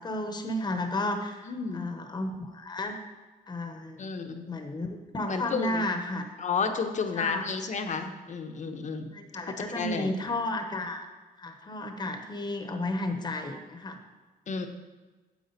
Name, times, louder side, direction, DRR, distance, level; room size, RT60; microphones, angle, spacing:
voice 1, 0.0-3.0 3.5-4.0 4.5-6.2 7.1-7.5 9.1-11.1 11.4-14.0, left 1 dB, 25° left, 6 dB, 0.9 m, -33 dB
voice 2, 1.5-1.9 4.0-4.5 5.3-5.9 6.4-9.1 9.7-10.1 14.5-14.7, left 5 dB, 50° left, 6 dB, 0.9 m, -31 dB
9.5 x 7.6 x 4.0 m, 1.3 s
cardioid pair, 125°, 16 cm